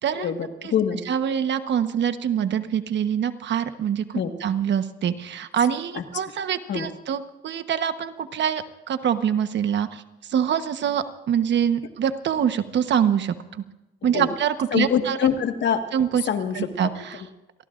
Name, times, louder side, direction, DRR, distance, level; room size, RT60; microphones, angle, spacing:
voice 1, 0.1-1.0 4.1-4.3 5.9-6.0 6.7-6.9 14.1-14.3 14.7-15.8 16.3-16.7, left 8 dB, 65° left, 6 dB, 1.7 m, -24 dB
voice 2, 1.1-10.0 10.3-13.6 14.0-15.2 15.9-16.3 16.5-17.2, right 8 dB, 65° right, 10 dB, 1.2 m, -25 dB
27.5 x 19.5 x 2.6 m, 0.98 s
cardioid pair, 90°, 20 cm